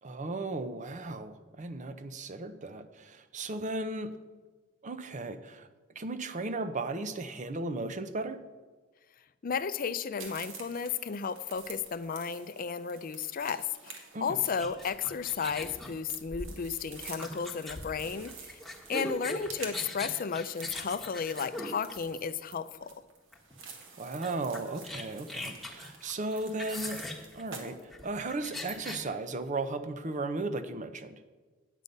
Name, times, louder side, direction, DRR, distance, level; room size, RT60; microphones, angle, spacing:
voice 1, 0.0-4.1 4.8-5.7 6.0-8.4 14.1-14.4 18.9-19.1 24.0-27.0 27.3-31.2, right 2 dB, 40° right, 11 dB, 0.7 m, -36 dB
voice 2, 9.4-18.6 18.9-22.9, left 6 dB, 45° left, 14 dB, 0.4 m, -34 dB
sound 1, 10.2-27.7, right 5 dB, 75° right, 1.5 m, -49 dB
sound 2, 14.5-22.5 23.3-23.5 23.8-23.9 24.2-29.0, left 1 dB, ahead, 1.3 m, -41 dB
9.2 x 8.2 x 5.3 m, 1.3 s
head